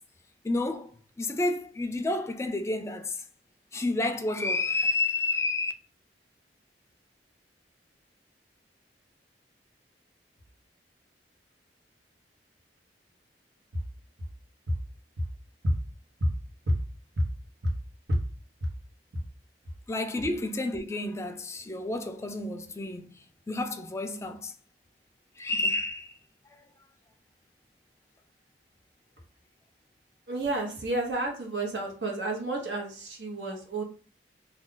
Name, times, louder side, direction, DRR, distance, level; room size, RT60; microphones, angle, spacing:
voice 1, 0.4-0.9 1.2-3.2 3.7-5.7 19.9-24.5 25.4-26.1, left 2 dB, 15° left, 0.3 m, -30 dB
voice 2, 30.3-33.8, right 1 dB, 85° right, 1.0 m, -29 dB
2.4 x 2.3 x 3.7 m
head